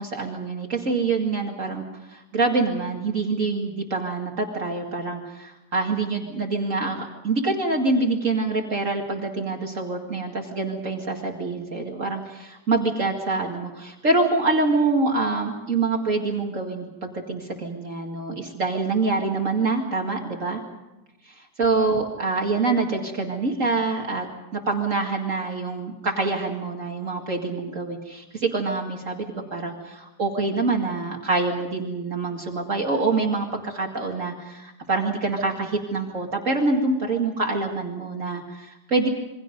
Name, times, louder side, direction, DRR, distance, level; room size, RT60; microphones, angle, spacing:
voice 1, 0.0-20.6 21.3-24.3 24.5-39.1, right 3 dB, 50° right, 1 dB, 2.6 m, -25 dB
28.0 x 23.5 x 5.3 m, 1.0 s
omnidirectional pair, 1.8 m